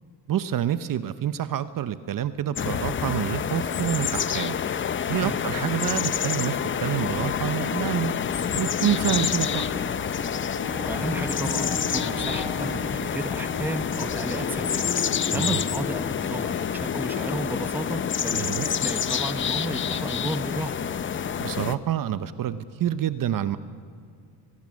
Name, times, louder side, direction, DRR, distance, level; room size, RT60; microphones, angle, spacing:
voice 1, 0.3-4.6 5.1-8.2 8.5-9.6 15.3-15.6 18.3-18.7 21.4-23.6, right 10 dB, 55° right, 13 dB, 0.9 m, -27 dB
sound 1, 2.6-21.8, left 8 dB, 30° left, 0.6 m, -28 dB
Bird / Buzz, 8.8-21.4, left 2 dB, 65° left, 6.3 m, -40 dB
voice 2, 10.8-14.9 15.3-20.8, right 1 dB, 5° right, 10 dB, 0.9 m, -33 dB
23.0 x 20.5 x 6.4 m, 2.4 s
cardioid pair, 115°, 41 cm